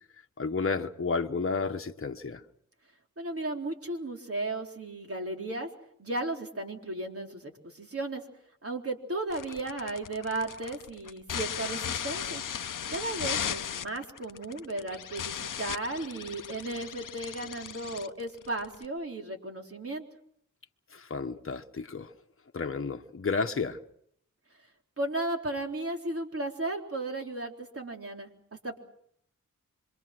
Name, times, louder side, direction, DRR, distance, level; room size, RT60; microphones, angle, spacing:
voice 1, 0.4-2.4 20.9-22.1 22.5-23.8, left 4 dB, 40° left, 1.3 m, -31 dB
voice 2, 3.2-5.7 6.0-8.2 8.6-12.4 12.9-20.0 25.0-28.3 28.6-28.8, right 2 dB, 45° right, 4.0 m, -35 dB
sound 1, 9.3-18.8, left 8 dB, 80° left, 0.9 m, -37 dB
26.5 x 23.5 x 6.2 m
cardioid pair, 55°, 32 cm